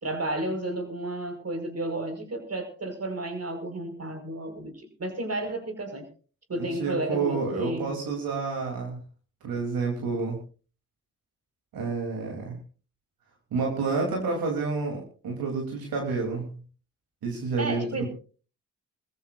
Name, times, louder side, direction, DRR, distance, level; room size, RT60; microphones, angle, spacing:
voice 1, 0.0-6.1 6.5-8.0 17.6-18.1, right 1 dB, 45° right, 5 dB, 5.2 m, -32 dB
voice 2, 6.6-9.0 9.4-10.4 11.7-12.6 13.5-16.5 17.2-18.1, right 4 dB, 80° right, 1 dB, 3.4 m, -29 dB
24.0 x 14.5 x 2.6 m, 0.37 s
supercardioid pair, 45°, 35 cm